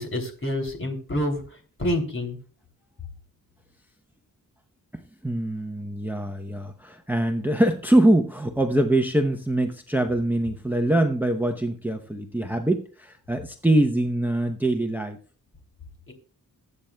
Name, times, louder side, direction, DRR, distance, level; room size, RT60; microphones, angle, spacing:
voice 1, 0.0-1.4 1.8-2.4 16.1-16.2, left 1 dB, 35° left, 4 dB, 2.9 m, -27 dB
voice 2, 4.9-15.2, right 1 dB, 5° right, 5 dB, 0.7 m, -23 dB
21.0 x 8.7 x 2.2 m, 0.40 s
wide cardioid pair, 125°, 34 cm